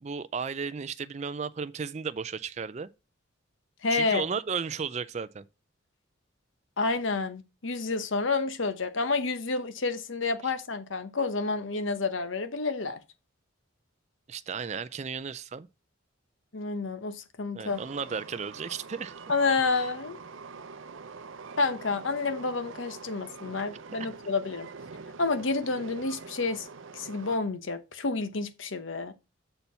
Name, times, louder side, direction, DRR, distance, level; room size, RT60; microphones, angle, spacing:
voice 1, 0.0-2.9 3.9-5.5 10.4-10.5 14.3-15.7 17.5-19.1 19.7-19.8 24.0-24.1, right 6 dB, 35° right, 0.4 m, -34 dB
voice 2, 3.8-4.3 6.8-13.0 16.5-17.8 19.3-20.2 21.6-24.7 25.2-26.7 26.9-29.1, left 3 dB, 75° left, 1.0 m, -29 dB
Train, 17.7-27.4, right 4 dB, 75° right, 0.6 m, -45 dB
6.8 x 4.4 x 5.6 m
head